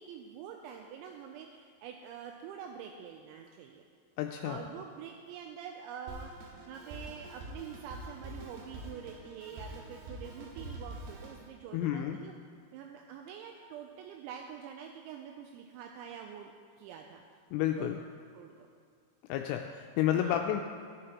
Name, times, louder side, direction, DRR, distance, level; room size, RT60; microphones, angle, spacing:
voice 1, 0.0-3.8 4.4-12.3 12.7-16.5 16.8-17.2 17.8-17.9 18.3-18.5 20.1-20.3, right 8 dB, 85° right, 2 dB, 2.7 m, -46 dB
voice 2, 4.2-4.6 11.7-12.2 17.5-18.0 19.3-20.6, left 11 dB, 85° left, 4 dB, 3.0 m, -30 dB
Drum kit, 6.1-11.5, right 1 dB, 65° right, 2.9 m, -45 dB
16.5 x 9.9 x 3.0 m, 2.2 s
omnidirectional pair, 5.8 m